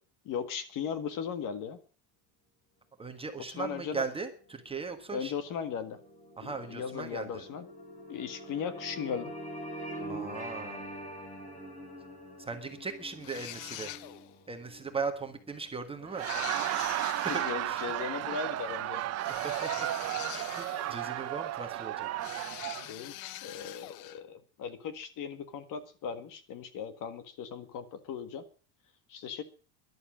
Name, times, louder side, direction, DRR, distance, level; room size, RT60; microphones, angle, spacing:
voice 1, 0.3-1.8 3.4-4.0 5.1-6.0 6.4-7.7 8.1-9.3 17.3-19.0 22.5-23.2 23.4-28.4 29.1-29.4, left 7 dB, 45° left, 11 dB, 1.8 m, -37 dB
voice 2, 3.0-5.3 6.4-7.4 10.1-10.8 12.4-13.9 14.5-16.3 16.7-18.1 19.3-19.9 20.3-22.5, right 4 dB, 10° right, 5 dB, 1.4 m, -39 dB
sound 1, 4.4-16.8, right 1 dB, 15° left, 4.1 m, -45 dB
sound 2, 13.2-14.4 16.2-17.6 19.2-21.2 22.2-24.2, left 15 dB, 65° left, 0.9 m, -43 dB
Laughter, 16.0-22.9, right 14 dB, 35° right, 0.8 m, -33 dB
12.5 x 11.5 x 7.4 m, 0.40 s
cardioid pair, 160°, 44 cm